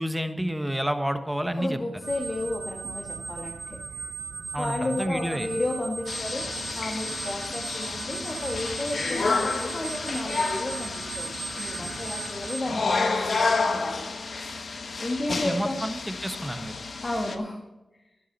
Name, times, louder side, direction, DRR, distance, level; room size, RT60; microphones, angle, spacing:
voice 1, 0.0-1.8 4.5-5.5 15.3-16.7, equal, 5° right, 8 dB, 1.3 m, -29 dB
voice 2, 1.6-4.1 4.6-6.5 6.7-11.3 11.6-14.0 15.0-15.8 17.0-17.6, left 1 dB, 40° left, 1 dB, 1.8 m, -32 dB
sound 1, 2.0-12.6, right 5 dB, 80° right, 0.6 m, -38 dB
sound 2, 6.1-17.4, left 4 dB, 70° left, 1.2 m, -30 dB
12.0 x 11.5 x 4.2 m, 1.0 s
cardioid pair, 45°, 0 cm